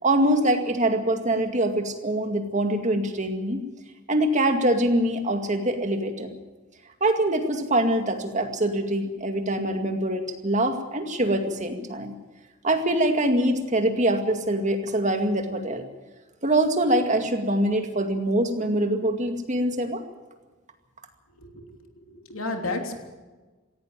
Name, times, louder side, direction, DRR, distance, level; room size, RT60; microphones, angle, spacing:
voice 1, 0.0-3.6 4.1-6.3 7.0-12.2 12.6-15.8 16.4-20.0, right 1 dB, 35° right, 5 dB, 2.2 m, -24 dB
voice 2, 21.4-23.0, left 2 dB, 90° left, 4 dB, 3.1 m, -33 dB
17.5 x 16.5 x 9.1 m, 1.3 s
head